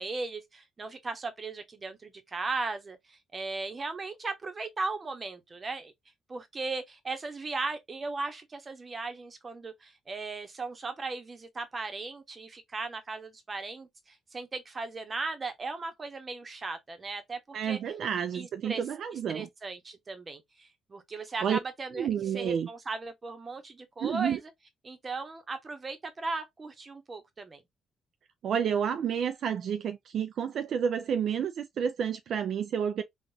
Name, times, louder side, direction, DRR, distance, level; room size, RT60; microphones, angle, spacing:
voice 1, 0.0-5.9 6.3-17.8 18.3-18.8 19.3-22.1 22.3-24.4 24.8-27.6, right 3 dB, 30° right, 1.0 m, -37 dB
voice 2, 17.5-19.5 21.4-21.6 22.0-22.7 24.0-24.4 28.4-33.0, right 8 dB, 65° right, 0.4 m, -30 dB
3.9 x 2.4 x 2.6 m
cardioid pair, 90°, 0 cm